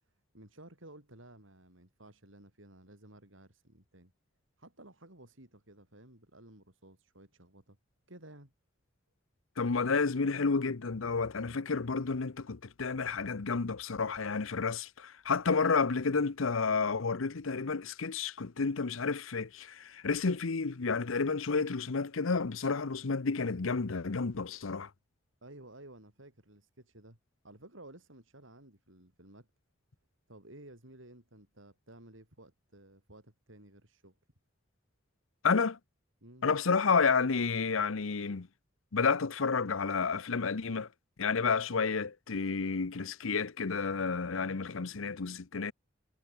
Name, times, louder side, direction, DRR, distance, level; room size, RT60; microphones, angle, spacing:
voice 1, 0.0-4.1 4.6-7.8 8.1-8.5 25.4-27.2 27.4-29.5 30.3-34.2 36.2-36.5, right 1 dB, 70° right, 6.0 m, -54 dB
voice 2, 9.6-24.9 35.4-35.8 36.4-38.5 38.9-40.9 41.2-45.7, left 4 dB, 80° left, 0.8 m, -30 dB
head